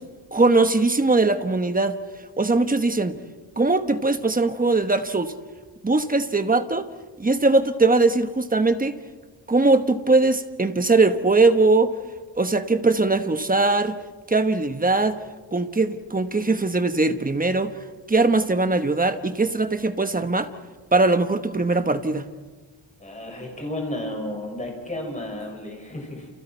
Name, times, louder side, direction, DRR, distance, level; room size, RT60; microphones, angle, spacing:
voice 1, 0.3-2.0 2.4-3.2 3.6-5.3 5.8-6.9 7.2-8.9 9.5-11.9 12.4-14.0 14.3-15.2 15.5-17.7 18.1-20.5 20.9-22.2, right 3 dB, 20° right, 1.2 m, -20 dB
voice 2, 23.0-26.3, left 1 dB, 15° left, 6.5 m, -32 dB
29.5 x 29.5 x 4.6 m
wide cardioid pair, 140°, 45 cm